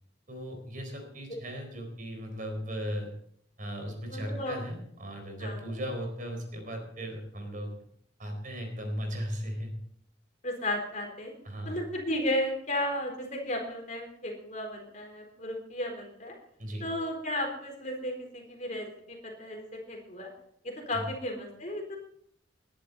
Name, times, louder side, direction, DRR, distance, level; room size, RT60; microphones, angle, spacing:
voice 1, 0.3-3.1 3.6-7.7 8.2-9.8 11.4-11.8 16.6-16.9 20.9-21.1, equal, 45° right, 4 dB, 4.4 m, -37 dB
voice 2, 4.0-4.6 5.4-5.6 10.4-11.3 11.6-16.3 16.8-20.3 20.6-22.0, left 1 dB, 40° left, 2 dB, 4.0 m, -34 dB
20.5 x 11.0 x 4.2 m, 0.67 s
head